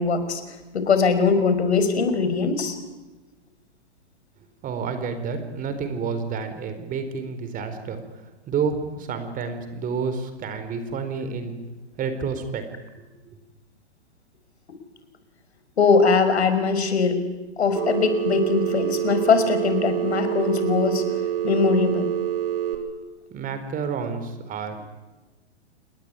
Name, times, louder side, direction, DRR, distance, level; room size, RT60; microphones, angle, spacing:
voice 1, 0.0-2.8 15.8-17.2 17.6-21.0 21.4-22.1, left 5 dB, 75° left, 9 dB, 5.5 m, -21 dB
voice 2, 4.6-11.6 12.0-12.7 13.2-13.4 23.3-24.8, right 5 dB, 25° right, 9 dB, 4.3 m, -29 dB
Telephone, 17.8-22.8, right 11 dB, 55° right, 7.5 m, -26 dB
29.0 x 20.0 x 9.8 m, 1.1 s
hypercardioid pair, 120°, 33 cm